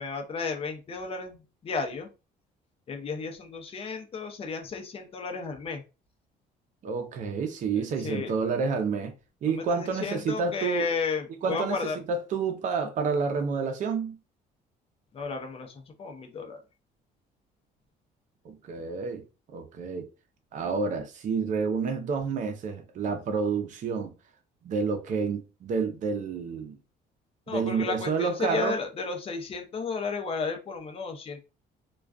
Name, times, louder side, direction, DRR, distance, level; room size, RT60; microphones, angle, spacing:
voice 1, 0.0-2.1 2.9-5.8 7.8-8.3 9.5-12.0 15.1-16.6 20.6-20.7 27.5-31.5, left 4 dB, 35° left, 0.6 m, -33 dB
voice 2, 6.8-9.1 9.4-10.9 11.3-14.2 18.4-19.2 19.5-20.1 20.5-24.1 24.6-26.8 27.5-28.7, right 5 dB, 50° right, 0.5 m, -29 dB
2.3 x 2.2 x 2.4 m
cardioid pair, 110°, 17 cm